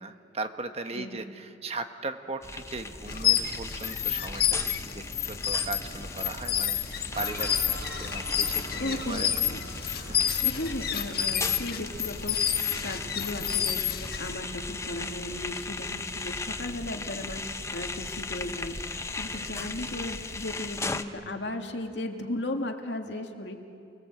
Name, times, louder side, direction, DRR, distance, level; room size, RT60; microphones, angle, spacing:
voice 1, 0.0-9.3 10.0-10.3 19.3-19.5, right 3 dB, 35° right, 7 dB, 1.2 m, -38 dB
sound 1, 2.4-21.0, left 3 dB, 15° left, 0.8 m, -37 dB
sound 2, 3.1-14.3, left 10 dB, 60° left, 1.4 m, -29 dB
sound 3, 7.1-22.0, right 1 dB, 75° right, 2.8 m, -48 dB
voice 2, 8.8-9.9 10.4-12.4 12.8-13.9 14.2-23.6, left 1 dB, 85° left, 3 dB, 2.1 m, -36 dB
29.5 x 20.5 x 7.9 m, 2.6 s
head